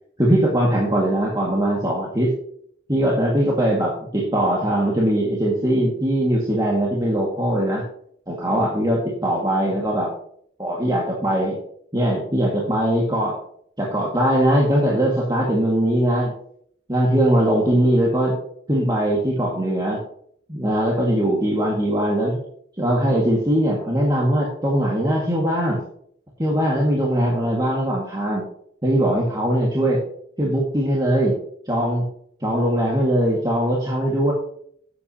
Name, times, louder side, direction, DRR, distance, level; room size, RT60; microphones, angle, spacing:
voice 1, 0.2-2.3 2.9-7.8 8.3-10.1 10.6-11.6 11.9-13.4 13.8-16.3 16.9-18.4 18.7-20.0 20.5-22.4 22.8-25.8 26.4-28.4 28.8-30.0 30.4-31.4 31.7-32.0 32.4-34.3, right 1 dB, 20° right, -4 dB, 1.9 m, -20 dB
10.5 x 8.4 x 2.9 m, 0.63 s
head